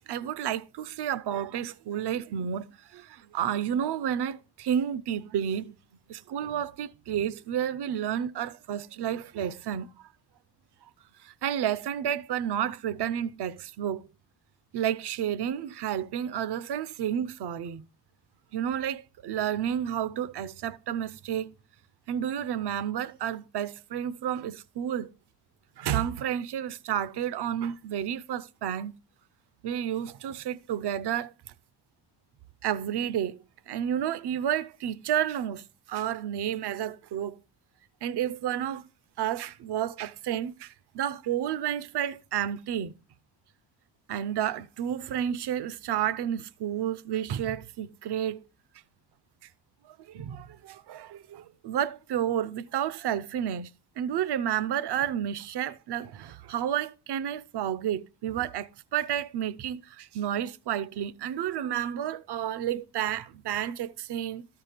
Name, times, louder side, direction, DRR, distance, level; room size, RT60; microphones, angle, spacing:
voice 1, 0.1-2.7 2.9-5.7 6.1-9.9 11.2-14.1 14.7-17.9 18.5-21.5 22.1-25.1 25.8-28.9 29.6-31.3 32.6-33.4 33.7-37.4 38.0-38.9 39.2-42.9 44.1-48.4 49.8-53.7 54.0-64.5, right 10 dB, 60° right, 0.7 m, -31 dB
13.0 x 4.8 x 5.0 m
cardioid pair, 80°, 45 cm